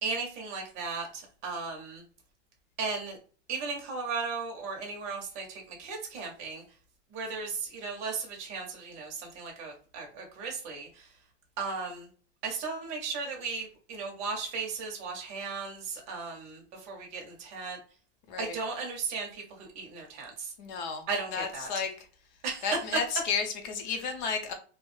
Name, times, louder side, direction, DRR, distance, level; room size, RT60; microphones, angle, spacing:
voice 1, 0.0-2.0 2.8-3.2 3.5-6.6 7.1-11.1 11.6-12.1 12.4-17.8 18.4-20.5 21.1-21.7 22.4-22.6, right 4 dB, 20° right, 0 dB, 0.5 m, -36 dB
voice 2, 20.6-21.0 21.3-22.1 22.6-24.5, left 5 dB, 40° left, 6 dB, 0.5 m, -32 dB
2.2 x 2.0 x 3.0 m, 0.40 s
supercardioid pair, 165°, 35 cm